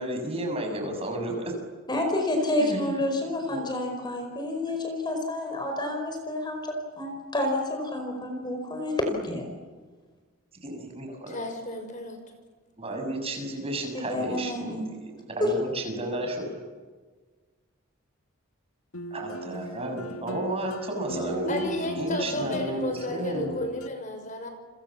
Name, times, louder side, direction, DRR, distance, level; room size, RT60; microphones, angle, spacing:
voice 1, 0.0-1.4 2.6-2.9 3.5-3.6 10.6-11.4 12.8-16.5 19.1-23.5, right 1 dB, 30° right, 3 dB, 6.9 m, -32 dB
voice 2, 1.9-9.5 13.9-14.9 15.4-15.5, left 1 dB, 20° left, 3 dB, 5.0 m, -29 dB
voice 3, 11.3-12.2 21.4-24.5, left 1 dB, 35° left, 6 dB, 6.0 m, -33 dB
sound 1, 18.9-23.9, right 1 dB, 85° left, 1.6 m, -38 dB
30.0 x 26.0 x 7.3 m, 1.4 s
head